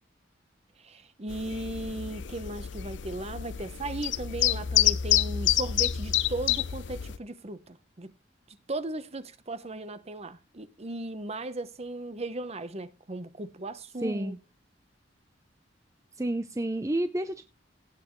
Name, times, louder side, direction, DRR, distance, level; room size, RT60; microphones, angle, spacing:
voice 1, 0.8-8.1 8.7-14.4, right 2 dB, 35° right, 0.9 m, -37 dB
sound 1, 1.3-7.2, left 11 dB, 70° left, 0.6 m, -28 dB
voice 2, 14.0-14.4 16.2-17.5, right 1 dB, 15° right, 0.6 m, -30 dB
17.0 x 7.3 x 3.1 m
head